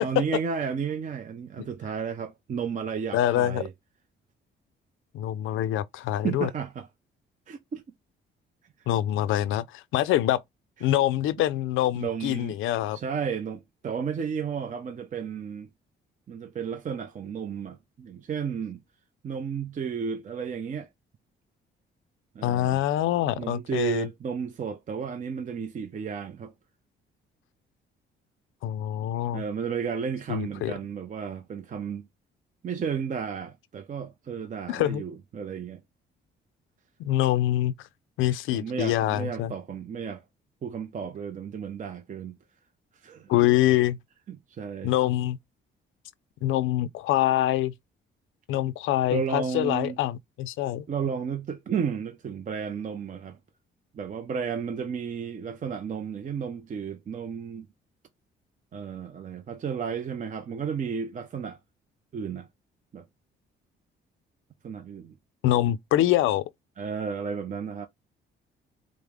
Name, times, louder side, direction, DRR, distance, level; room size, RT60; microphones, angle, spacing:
voice 1, 0.0-3.7 6.2-6.9 7.5-7.8 10.8-11.0 12.0-12.6 12.9-15.7 16.3-18.8 19.2-20.9 22.3-22.8 23.4-26.5 29.3-32.0 32.6-35.8 38.5-40.2 40.6-42.4 43.0-43.3 44.3-44.9 49.1-50.0 50.9-53.4 53.9-57.7 58.7-61.6 62.1-62.5 62.9-63.0 64.6-65.1 66.8-67.9, right 6 dB, 40° right, 0.5 m, -33 dB
voice 2, 3.1-3.6 5.1-6.5 8.9-10.4 10.8-13.0 22.4-24.1 28.6-29.4 30.3-30.7 34.7-35.0 37.0-37.7 38.2-39.5 43.3-44.0 44.8-45.4 46.4-47.7 48.5-50.8 65.4-66.4, left 13 dB, 85° left, 0.4 m, -25 dB
4.8 x 2.0 x 3.5 m
cardioid pair, 90°, 20 cm